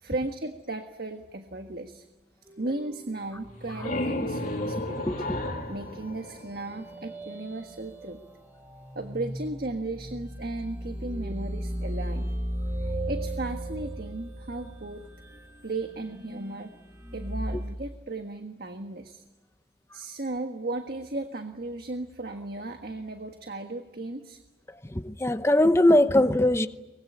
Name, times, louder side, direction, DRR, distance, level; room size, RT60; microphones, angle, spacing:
voice 1, 0.0-2.0 2.6-5.1 5.7-8.2 8.9-12.3 12.8-15.1 15.6-16.7 17.1-19.2 19.9-24.4, right 2 dB, 55° right, 1.5 m, -35 dB
sound 1, 2.5-5.0 5.3-5.5 6.5-17.7, equal, 15° right, 2.4 m, -37 dB
sound 2, 3.4-7.1, left 1 dB, 50° left, 3.0 m, -33 dB
voice 2, 25.0-26.7, left 1 dB, 15° left, 0.9 m, -20 dB
24.0 x 21.5 x 9.9 m
head